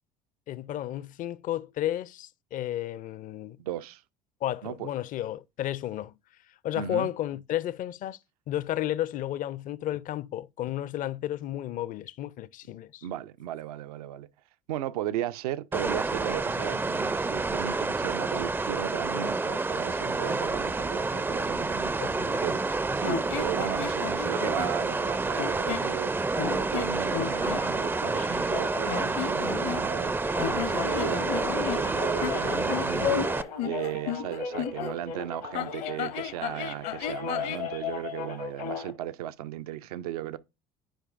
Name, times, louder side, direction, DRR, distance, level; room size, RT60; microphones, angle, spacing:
voice 1, 0.5-3.6 4.4-6.2 6.6-8.2 8.5-13.0 21.9-22.4, left 12 dB, 45° left, 0.5 m, -32 dB
voice 2, 3.6-4.0 4.6-4.9 6.8-7.1 13.0-14.3 14.7-21.9 22.4-22.6 22.9-26.1 26.5-40.4, right 12 dB, 80° right, 0.5 m, -36 dB
sound 1, 15.7-33.4, right 3 dB, 10° right, 0.4 m, -29 dB
sound 2, 23.0-24.8 25.3-25.9 26.4-27.6 28.8-30.1 30.4-34.9 35.5-37.7, left 11 dB, 65° left, 0.8 m, -34 dB
sound 3, 26.8-38.9, left 6 dB, 85° left, 1.8 m, -36 dB
11.5 x 4.9 x 2.4 m
hypercardioid pair, 70°, 19 cm